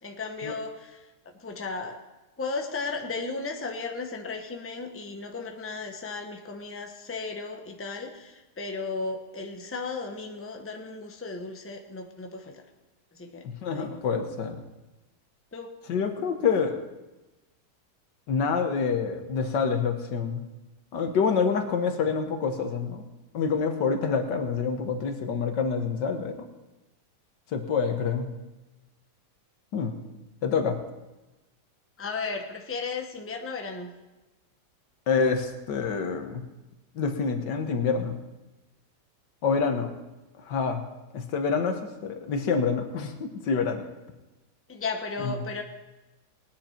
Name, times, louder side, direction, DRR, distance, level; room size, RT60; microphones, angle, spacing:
voice 1, 0.0-2.0 2.4-12.6 13.1-13.4 13.7-14.0 15.5-15.7 32.0-33.9 44.7-45.6, left 4 dB, 10° left, 3 dB, 0.8 m, -35 dB
voice 2, 13.4-14.6 15.9-16.8 18.3-20.4 20.9-26.5 27.5-28.3 29.7-30.0 30.4-30.8 35.1-36.4 37.0-38.2 39.4-39.9 40.4-40.8 41.1-43.8 45.2-45.4, left 5 dB, 85° left, 6 dB, 1.8 m, -27 dB
20.0 x 9.8 x 4.4 m, 1.1 s
omnidirectional pair, 1.8 m